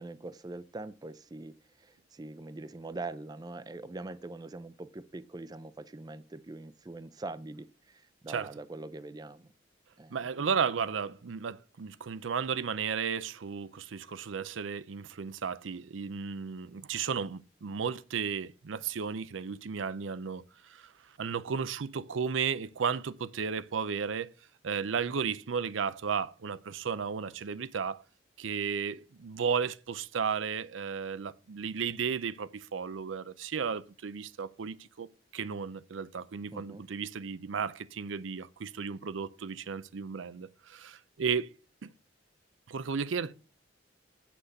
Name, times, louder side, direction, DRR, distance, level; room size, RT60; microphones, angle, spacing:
voice 1, 0.0-9.5 10.0-10.5 36.5-36.8, right 2 dB, 20° right, 0.4 m, -43 dB
voice 2, 10.1-20.9 21.2-24.3 24.6-28.0 28.4-35.1 35.3-41.5 41.8-41.9 42.7-43.3, right 6 dB, 85° right, 0.5 m, -34 dB
8.0 x 5.9 x 6.6 m
head